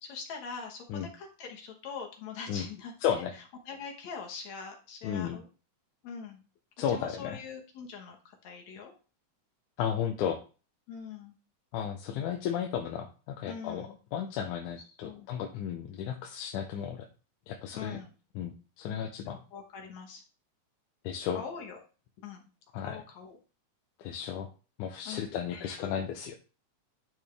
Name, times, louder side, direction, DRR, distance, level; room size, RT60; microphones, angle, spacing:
voice 1, 0.0-2.9 3.3-5.5 6.0-6.4 6.9-8.9 10.9-11.3 13.5-14.0 14.8-15.3 17.7-18.1 19.2-20.2 21.3-21.8 22.2-22.4 22.8-23.4 25.1-25.9, left 6 dB, 70° left, 1 dB, 2.5 m, -43 dB
voice 2, 3.0-3.3 5.0-5.4 6.8-7.4 9.8-10.4 11.7-17.1 17.5-18.0 18.4-19.4 21.0-21.4 22.7-23.0 24.0-24.5 24.8-26.3, left 8 dB, 85° left, 3 dB, 2.2 m, -34 dB
10.5 x 4.5 x 3.4 m, 0.35 s
omnidirectional pair, 3.5 m